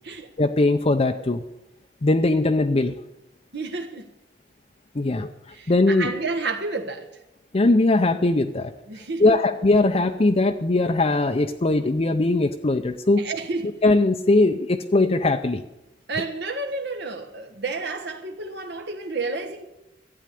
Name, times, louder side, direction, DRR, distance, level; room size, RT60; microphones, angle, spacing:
voice 1, 0.4-1.4 2.0-2.9 4.9-5.3 5.7-6.1 7.5-8.7 9.2-13.3 13.8-15.6, left 2 dB, 35° left, 0.6 m, -20 dB
voice 2, 3.5-4.1 5.5-7.1 8.9-9.4 13.2-13.7 16.1-19.6, right 3 dB, 65° right, 1.2 m, -30 dB
12.5 x 8.9 x 8.2 m
head